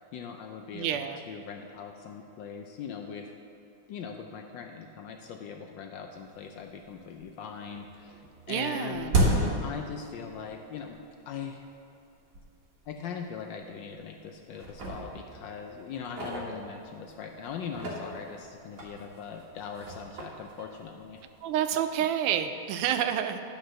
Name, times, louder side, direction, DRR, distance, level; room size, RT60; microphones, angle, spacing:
voice 1, 0.1-3.3 3.9-8.2 8.5-11.0 11.3-11.6 12.9-21.2, left 6 dB, 75° left, 3 dB, 1.1 m, -40 dB
voice 2, 0.7-1.2 8.5-9.2 21.4-23.4, right 9 dB, 85° right, 8 dB, 1.5 m, -29 dB
sound 1, 6.3-6.4 6.8-7.4 7.6-10.6 10.9-11.0 11.7-11.8 12.3-12.4 12.8-12.9 13.6-14.2 14.5-17.1 17.6-21.5, right 1 dB, 50° right, 1.8 m, -33 dB
11.5 x 4.0 x 6.3 m, 2.6 s
omnidirectional pair, 2.4 m